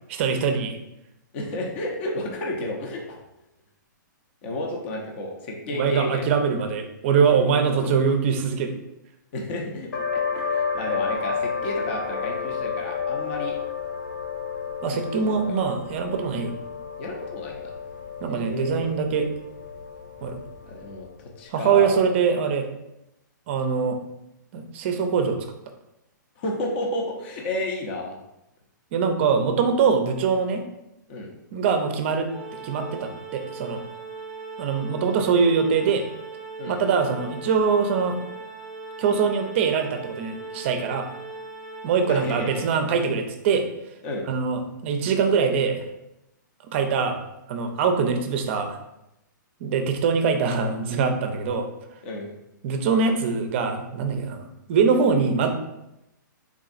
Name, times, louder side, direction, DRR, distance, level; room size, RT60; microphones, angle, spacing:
voice 1, 0.1-0.8 5.7-8.7 14.8-16.5 18.2-19.3 20.2-20.4 21.5-22.7 23.5-24.0 24.5-25.4 28.9-30.6 31.5-32.3 32.6-33.8 34.6-36.0 36.7-38.2 39.0-41.1 41.8-43.7 44.3-45.8 46.7-47.2 47.5-48.8 49.6-51.7 52.6-55.5, right 5 dB, 35° right, 6 dB, 0.5 m, -23 dB
voice 2, 1.3-3.2 4.4-6.3 7.3-7.4 7.8-7.9 9.3-13.6 15.3-15.4 17.0-17.6 18.3-18.9 20.7-21.1 21.4-22.0 26.4-28.1 31.1-31.3 36.6-36.7 42.1-42.6 44.0-44.2 52.0-52.3, left 1 dB, 35° left, 0 dB, 0.6 m, -31 dB
sound 1, 9.9-21.2, left 6 dB, 75° left, 0.8 m, -31 dB
Organ, 32.3-43.2, right 3 dB, ahead, 0.9 m, -39 dB
3.7 x 3.6 x 2.5 m, 0.87 s
hypercardioid pair, 155°, 11 cm